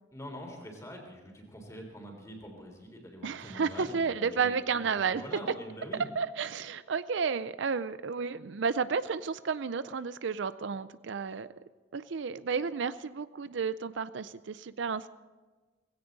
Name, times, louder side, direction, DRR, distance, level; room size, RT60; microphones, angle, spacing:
voice 1, 0.1-6.1, equal, 15° left, 1 dB, 3.5 m, -45 dB
voice 2, 3.2-5.2 6.2-11.5 11.9-15.1, right 5 dB, 70° right, 14 dB, 0.5 m, -32 dB
19.0 x 16.5 x 4.0 m, 1.3 s
head